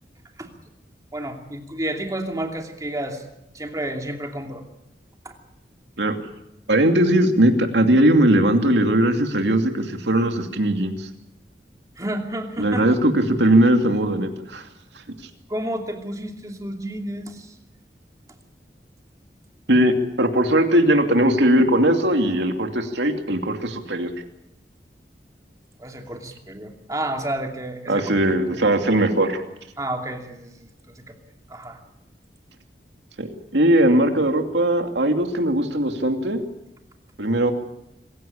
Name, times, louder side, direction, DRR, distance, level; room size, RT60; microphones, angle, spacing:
voice 1, 1.1-3.2 3.5-4.6 5.2-5.3 12.0-12.9 15.5-17.6 25.8-28.1 28.5-28.6 29.8-30.5 31.0-31.1 31.5-31.8, right 1 dB, 20° right, 3 dB, 2.7 m, -30 dB
voice 2, 6.7-11.1 12.6-14.7 19.7-24.1 27.9-29.4 33.2-33.3 33.5-36.4 37.2-37.5, right 1 dB, 85° right, 5 dB, 2.6 m, -19 dB
26.0 x 16.0 x 8.5 m, 0.87 s
head